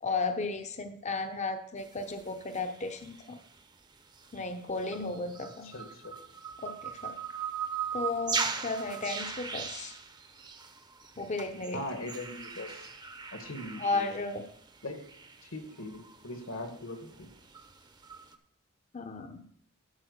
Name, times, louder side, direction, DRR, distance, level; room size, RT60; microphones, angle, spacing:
voice 1, 0.0-3.4 4.3-5.7 6.6-7.4 7.9-9.9 11.2-11.8 13.8-14.5 18.9-19.4, left 3 dB, 35° left, 7 dB, 0.7 m, -34 dB
sound 1, 1.8-3.6 4.2-18.4, right 5 dB, 20° right, 0.7 m, -40 dB
voice 2, 5.7-6.1 11.7-12.8 13.3-14.1 14.8-15.0 15.4-17.3, left 1 dB, 75° left, 5 dB, 1.8 m, -40 dB
12.0 x 4.8 x 6.6 m, 0.63 s
head